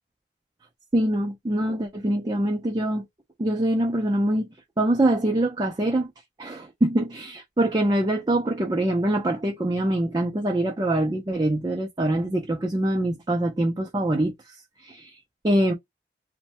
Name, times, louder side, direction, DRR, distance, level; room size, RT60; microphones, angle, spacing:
voice 1, 0.9-3.0 3.4-4.5 4.8-6.1 6.4-15.2 15.4-15.7, right 1 dB, 25° right, 0.4 m, -24 dB
3.1 x 2.1 x 2.9 m
head